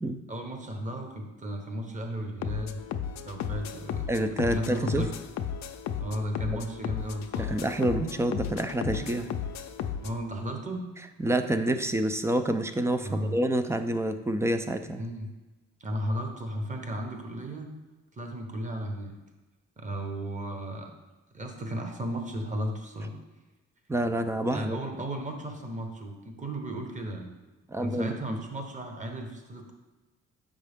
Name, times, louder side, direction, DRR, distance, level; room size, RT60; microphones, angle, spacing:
voice 1, 0.3-2.8 3.2-5.1 6.0-7.6 10.0-10.9 13.0-13.4 15.0-15.3 15.8-17.7 18.1-19.1 19.8-20.9 21.3-23.2 24.5-27.3 27.8-29.7, equal, 25° right, 4 dB, 1.0 m, -35 dB
sound 1, 2.4-10.2, left 8 dB, 65° left, 0.5 m, -34 dB
voice 2, 4.1-5.1 6.5-6.6 7.4-9.3 11.2-15.0 23.9-24.8 27.7-28.4, right 1 dB, 10° right, 9 dB, 0.4 m, -28 dB
6.5 x 5.3 x 3.5 m, 1.1 s
cardioid pair, 90°, 30 cm